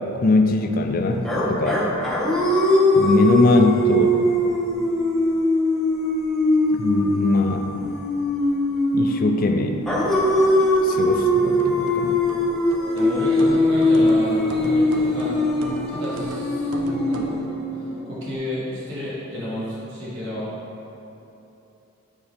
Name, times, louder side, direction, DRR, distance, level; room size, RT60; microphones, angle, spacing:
voice 1, 0.2-1.8 3.0-4.2 6.7-7.9 8.9-9.8 10.8-12.2, left 3 dB, 40° left, 5 dB, 0.3 m, -21 dB
sound 1, 1.2-9.3 9.9-17.9, left 1 dB, ahead, 0.6 m, -21 dB
sound 2, 9.3-18.4, right 1 dB, 20° right, 0.9 m, -38 dB
sound 3, 10.8-17.4, right 1 dB, 85° right, 0.6 m, -35 dB
voice 2, 12.9-15.4 15.9-17.4 18.1-20.5, left 1 dB, 55° right, -8 dB, 1.3 m, -31 dB
9.4 x 4.0 x 3.4 m, 2.9 s
head